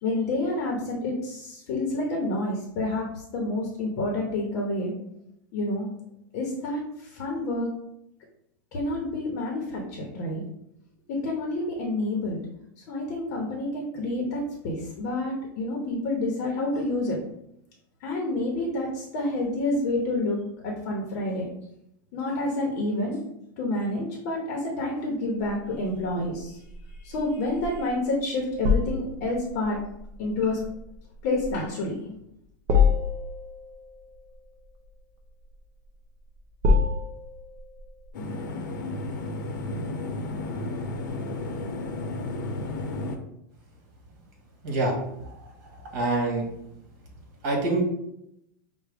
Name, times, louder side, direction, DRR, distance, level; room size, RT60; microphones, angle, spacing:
voice 1, 0.0-3.1 3.3-4.9 5.5-5.9 6.3-6.8 7.1-7.7 8.7-10.4 11.1-12.4 12.9-17.2 18.0-20.4 20.6-21.5 22.1-23.2 23.6-26.6 27.0-29.8 30.2-30.6 31.2-32.1, left 2 dB, 40° left, -1 dB, 0.8 m, -28 dB
sound 1, 25.4-38.1, left 5 dB, 30° right, 0.4 m, -28 dB
sound 2, 38.1-43.2, left 2 dB, 75° left, 0.7 m, -32 dB
voice 2, 44.6-44.9 45.9-46.4 47.4-47.8, right 2 dB, 50° right, -2 dB, 1.5 m, -25 dB
5.6 x 2.1 x 3.4 m, 0.79 s
supercardioid pair, 175°, 11 cm